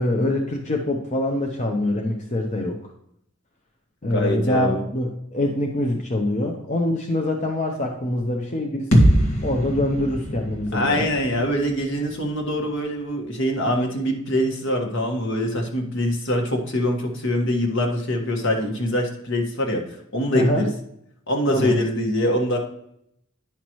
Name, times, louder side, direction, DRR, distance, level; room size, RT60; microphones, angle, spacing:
voice 1, 0.0-2.8 4.0-8.9 9.4-11.1 20.3-20.7 21.5-21.8, left 1 dB, 35° left, 1 dB, 0.8 m, -24 dB
voice 2, 4.1-4.8 10.7-19.8 20.1-20.7 21.3-22.6, equal, 65° left, 2 dB, 1.6 m, -23 dB
sound 1, 8.9-12.8, equal, 85° left, 1.7 m, -23 dB
10.5 x 5.9 x 3.1 m, 0.74 s
head